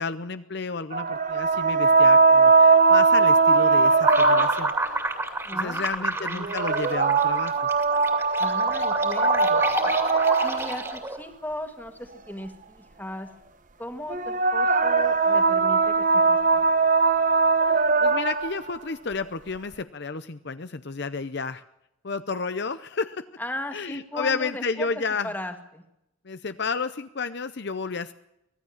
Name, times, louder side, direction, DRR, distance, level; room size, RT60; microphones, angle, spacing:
voice 1, 0.0-4.7 5.5-7.6 17.7-21.6 22.0-23.2 23.7-25.3 26.2-28.1, left 4 dB, 50° left, 11 dB, 0.7 m, -31 dB
sound 1, 0.9-4.9 6.4-10.9 14.1-18.6, right 4 dB, 35° right, 1.0 m, -20 dB
sound 2, 4.0-11.2, right 2 dB, 10° right, 2.6 m, -29 dB
voice 2, 5.5-6.5 8.4-9.9 10.4-13.3 13.8-16.6 23.4-24.9 25.2-25.8, left 1 dB, 10° left, 5 dB, 2.0 m, -37 dB
24.5 x 17.5 x 7.2 m, 0.85 s
head